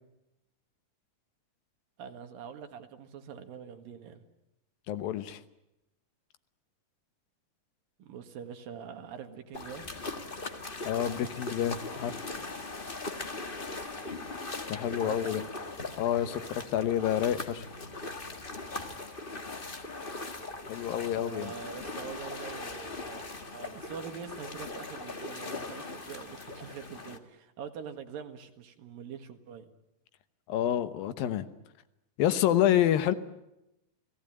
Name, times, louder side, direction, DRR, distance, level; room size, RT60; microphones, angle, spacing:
voice 1, 2.0-4.2 8.0-9.9 15.0-15.5 21.1-23.3 23.5-29.7, right 7 dB, 80° right, 7 dB, 3.6 m, -44 dB
voice 2, 4.9-5.4 10.8-12.2 14.7-15.4 16.0-17.7 20.7-21.5 30.5-31.5 32.2-33.1, left 11 dB, 85° left, 11 dB, 2.9 m, -28 dB
sound 1, 9.5-27.2, left 3 dB, 55° left, 0.6 m, -40 dB
29.5 x 18.0 x 9.0 m, 0.89 s
omnidirectional pair, 4.0 m